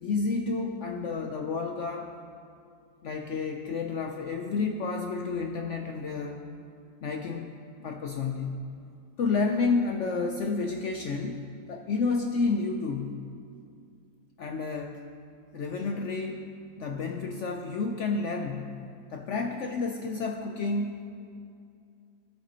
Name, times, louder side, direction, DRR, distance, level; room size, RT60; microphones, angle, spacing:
voice 1, 0.0-2.1 3.0-6.4 7.0-7.5 7.8-8.6 9.2-13.2 14.4-15.0 15.5-16.5 16.8-18.8 19.1-21.0, left 4 dB, 70° left, 3 dB, 0.7 m, -30 dB
17.0 x 8.2 x 2.9 m, 2.4 s
omnidirectional pair, 1.8 m